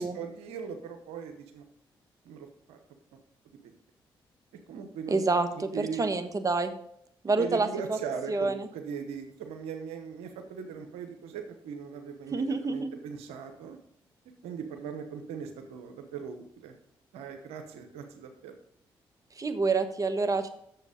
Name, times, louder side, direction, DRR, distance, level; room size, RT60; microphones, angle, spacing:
voice 1, 0.0-1.6 2.2-2.8 4.7-6.2 7.3-13.8 14.4-16.7 17.1-18.5, right 6 dB, 90° right, 6 dB, 1.0 m, -39 dB
voice 2, 5.1-6.7 7.2-8.0 8.3-8.7 12.3-12.9 19.4-20.5, right 3 dB, 35° right, 8 dB, 1.4 m, -28 dB
8.1 x 7.0 x 5.1 m, 0.72 s
supercardioid pair, 50°, 10 cm